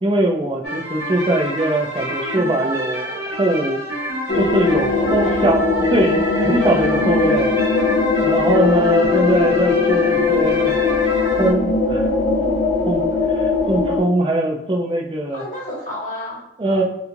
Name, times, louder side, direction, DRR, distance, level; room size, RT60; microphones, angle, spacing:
voice 1, 0.0-3.8 4.3-7.5 8.2-10.7 11.4-12.1 12.9-13.0 13.3-15.5 16.6-16.8, right 1 dB, 25° right, 1 dB, 0.4 m, -21 dB
sound 1, 0.6-11.5, equal, 65° right, 1.1 m, -27 dB
sound 2, 4.3-14.0, left 4 dB, 65° left, 0.6 m, -19 dB
voice 2, 5.0-5.5 15.3-16.8, equal, 45° left, -4 dB, 1.1 m, -31 dB
3.3 x 3.0 x 2.5 m, 0.87 s
head